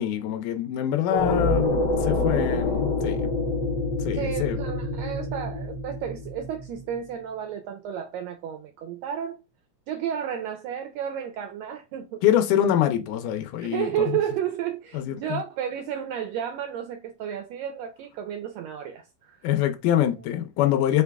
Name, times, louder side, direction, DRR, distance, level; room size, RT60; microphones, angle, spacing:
voice 1, 0.0-3.3 4.0-4.6 12.2-14.1 14.9-15.4 19.4-21.0, left 11 dB, 85° left, 2.1 m, -25 dB
sound 1, 1.1-7.0, left 2 dB, 65° left, 1.9 m, -26 dB
voice 2, 4.1-9.4 9.9-12.2 13.6-19.4, right 9 dB, 85° right, 1.5 m, -32 dB
5.3 x 2.3 x 3.4 m
omnidirectional pair, 3.5 m